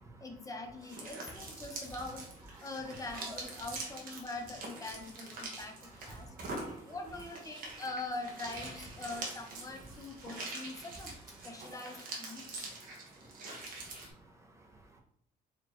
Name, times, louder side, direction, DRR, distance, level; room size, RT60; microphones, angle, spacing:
voice 1, 0.2-2.3 2.6-6.4 6.9-11.1 11.4-12.7, left 2 dB, 20° left, 3 dB, 0.7 m, -43 dB
sound 1, 0.8-14.1, right 2 dB, 55° right, 1.2 m, -45 dB
voice 2, 5.4-6.9 10.2-10.9 12.4-15.0, right 1 dB, 15° right, 0 dB, 0.8 m, -54 dB
4.0 x 3.1 x 3.0 m, 0.66 s
cardioid pair, 110°, 17 cm